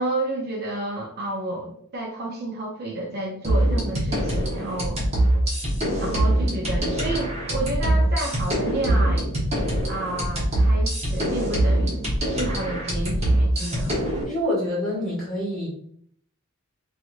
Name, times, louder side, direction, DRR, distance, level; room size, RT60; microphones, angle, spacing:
voice 1, 0.0-5.1 6.0-9.3 9.9-12.0 12.3-14.0, right 2 dB, 45° right, -1 dB, 0.5 m, -30 dB
sound 1, 3.4-14.2, right 1 dB, 30° right, 1.0 m, -23 dB
voice 2, 14.2-15.7, left 1 dB, ahead, -8 dB, 1.4 m, -26 dB
3.0 x 2.4 x 2.4 m, 0.65 s
head